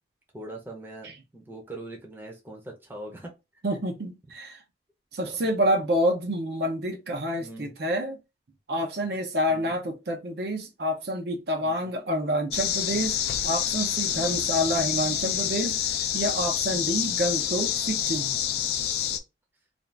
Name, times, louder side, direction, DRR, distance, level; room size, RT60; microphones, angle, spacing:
voice 1, 0.3-3.3 5.3-5.5 7.4-7.7 9.5-9.7 11.6-11.9 14.0-14.3 16.7-17.0, right 1 dB, 10° right, 0.6 m, -42 dB
voice 2, 3.6-4.6 5.1-8.2 8.7-15.8 16.1-18.4, equal, 60° right, 0.6 m, -28 dB
sound 1, 12.5-19.2, left 10 dB, 60° left, 0.3 m, -27 dB
2.5 x 2.4 x 3.2 m
head